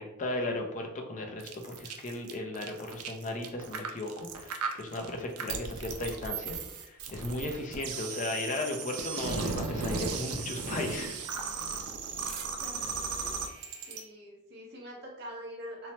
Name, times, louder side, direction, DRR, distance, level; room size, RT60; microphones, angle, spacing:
voice 1, 0.0-11.2, left 2 dB, 35° left, 3 dB, 0.4 m, -36 dB
sound 1, 1.4-14.0, right 5 dB, 90° right, 0.4 m, -36 dB
voice 2, 12.6-12.9 13.2-13.5 13.9-15.9, equal, 50° right, -2 dB, 0.7 m, -45 dB
3.1 x 2.0 x 2.8 m, 0.87 s
head